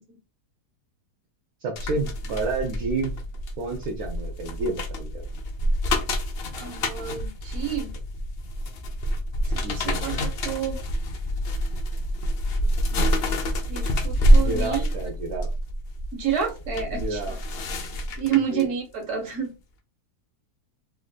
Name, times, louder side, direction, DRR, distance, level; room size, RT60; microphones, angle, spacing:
voice 1, 1.6-3.2 3.6-5.2 9.6-10.0 14.3-15.5 16.9-17.4 18.2-18.7, right 3 dB, 70° right, 0 dB, 1.1 m, -30 dB
sound 1, 1.8-18.6 19.1-19.3, equal, 70° left, 0.5 m, -26 dB
voice 2, 6.6-7.9 9.5-10.8 12.9-13.3 13.7-14.9 16.1-17.4 18.2-19.5, right 8 dB, 50° right, 1 dB, 1.3 m, -29 dB
3.3 x 2.5 x 2.2 m, 0.29 s
omnidirectional pair, 1.7 m